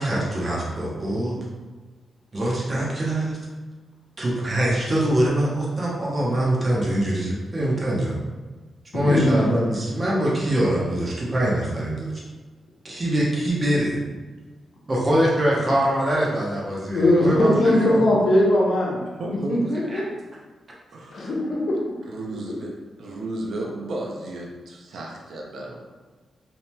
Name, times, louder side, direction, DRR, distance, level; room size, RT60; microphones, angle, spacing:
voice 1, 0.0-1.4 2.3-3.4 4.2-8.2 8.9-12.2 12.8-14.0 14.9-18.0 19.9-20.0, right 1 dB, 40° right, -5 dB, 0.8 m, -23 dB
voice 2, 2.5-2.9 19.2-19.6 20.9-21.2 22.1-25.9, right 2 dB, 75° right, -1 dB, 0.5 m, -34 dB
voice 3, 8.9-9.4 15.6-15.7 16.9-19.0 19.5-20.0 21.1-21.8, left 1 dB, 65° left, -3 dB, 0.7 m, -20 dB
2.9 x 2.8 x 2.2 m, 1.3 s
cardioid pair, 75°, 0 cm